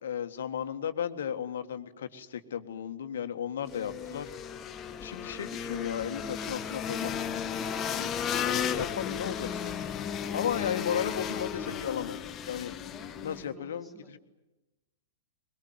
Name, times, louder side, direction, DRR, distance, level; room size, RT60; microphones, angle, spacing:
voice 1, 0.0-4.3 5.0-7.5 7.8-8.1 8.5-9.9 10.3-12.8 13.2-13.9, left 8 dB, 60° left, 9 dB, 1.6 m, -35 dB
sound 1, 3.7-13.5, left 8 dB, 25° left, 1.2 m, -34 dB
voice 2, 12.9-14.2, equal, 10° right, 2 dB, 3.7 m, -52 dB
23.0 x 22.5 x 9.4 m, 1.1 s
figure-of-eight pair, 105°, 0 cm